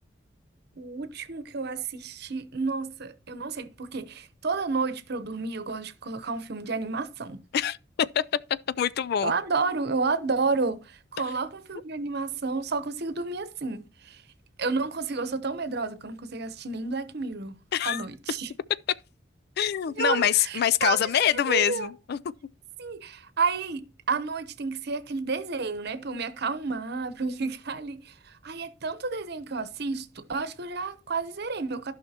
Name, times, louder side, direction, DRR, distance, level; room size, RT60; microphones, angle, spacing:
voice 1, 0.8-7.4 9.2-14.2 14.6-17.5 17.8-18.5 20.0-21.0 21.5-21.9 22.8-31.9, right 4 dB, 60° right, 0.9 m, -31 dB
voice 2, 8.8-9.3 17.7-18.1 19.6-22.2, left 9 dB, 55° left, 0.3 m, -25 dB
15.0 x 5.6 x 2.9 m
head